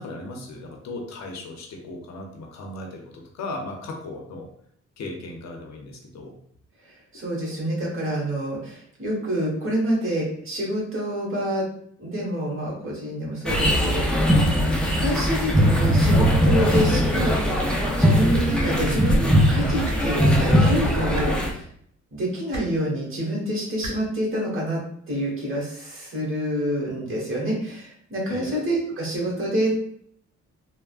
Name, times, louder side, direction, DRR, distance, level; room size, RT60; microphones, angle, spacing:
voice 1, 0.0-4.5 5.0-6.4 28.3-28.5, left 2 dB, 65° left, 2 dB, 0.6 m, -36 dB
voice 2, 6.9-11.6 12.0-14.4 15.0-17.5 18.0-21.6 22.1-24.8 25.1-29.8, equal, 45° right, -3 dB, 1.2 m, -27 dB
sound 1, 13.5-21.5, equal, 5° left, 0.4 m, -20 dB
sound 2, 19.8-20.0 21.1-21.3 22.5-22.7 23.8-23.9 25.2-25.3, right 2 dB, 65° right, 0.9 m, -33 dB
3.4 x 2.1 x 2.4 m, 0.65 s
cardioid pair, 120°, 30 cm